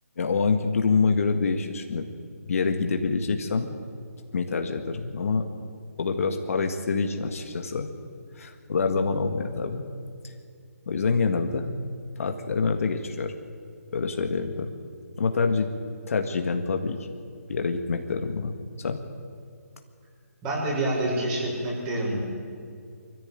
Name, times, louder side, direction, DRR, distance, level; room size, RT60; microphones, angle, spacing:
voice 1, 0.2-2.1 2.5-3.8 4.3-5.4 6.0-7.9 8.4-9.9 10.2-10.3 10.9-11.7 12.2-13.3 13.9-14.7 15.2-15.7 16.1-17.0 17.5-18.5 18.8-19.0, left 4 dB, 60° left, 4 dB, 1.9 m, -26 dB
voice 2, 20.4-22.2, right 1 dB, 20° right, -3 dB, 6.5 m, -27 dB
24.0 x 14.5 x 9.2 m, 2.3 s
hypercardioid pair, 155°, 9 cm